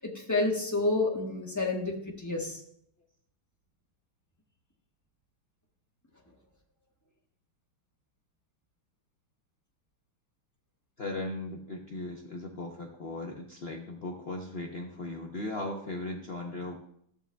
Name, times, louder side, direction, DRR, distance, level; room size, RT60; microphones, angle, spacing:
voice 1, 0.0-2.6, left 2 dB, 10° left, -1 dB, 0.8 m, -29 dB
voice 2, 11.0-16.8, left 2 dB, 80° left, 0 dB, 0.5 m, -37 dB
13.5 x 8.6 x 2.3 m, 0.69 s
omnidirectional pair, 2.3 m